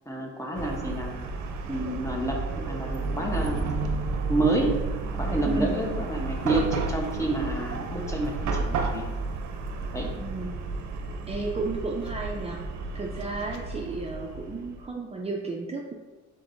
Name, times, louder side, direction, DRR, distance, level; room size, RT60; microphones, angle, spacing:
voice 1, 0.1-1.2 1.7-3.6 4.3-4.8 5.1-9.1 9.9-10.1, right 2 dB, 10° left, 0 dB, 0.9 m, -29 dB
Chatter / Car passing by / Traffic noise roadway noise, 0.5-14.8, right 3 dB, 70° right, 0.6 m, -32 dB
sound 1, 3.0-9.0, right 1 dB, 85° left, 0.9 m, -45 dB
voice 2, 5.4-5.8 10.2-10.7 11.3-15.9, right 3 dB, 20° right, -1 dB, 0.5 m, -33 dB
5.2 x 3.8 x 2.6 m, 1.3 s
cardioid pair, 90°, 30 cm